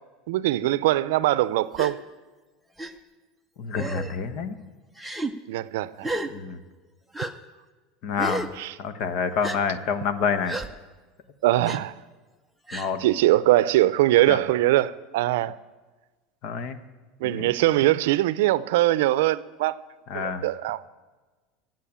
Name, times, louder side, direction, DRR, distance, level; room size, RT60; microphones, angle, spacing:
voice 1, 0.3-2.0 5.5-6.1 8.6-8.7 11.4-11.9 13.0-15.6 17.2-19.8 20.1-20.8, right 15 dB, 85° right, 0.5 m, -22 dB
Gasp, 1.7-1.9 2.8-2.9 3.8-4.2 5.0-5.3 6.0-6.3 7.1-7.3 8.2-8.5 9.4-9.6 10.5-10.7 11.7-11.8 12.7-12.9, right 1 dB, ahead, 0.7 m, -31 dB
voice 2, 3.6-4.6 6.3-6.6 8.0-8.5 8.8-10.6 12.7-13.0 14.3-14.4 16.4-16.8 17.2-17.5 20.1-20.4, left 6 dB, 50° left, 1.2 m, -28 dB
16.5 x 7.6 x 8.7 m
supercardioid pair, 155°, 0 cm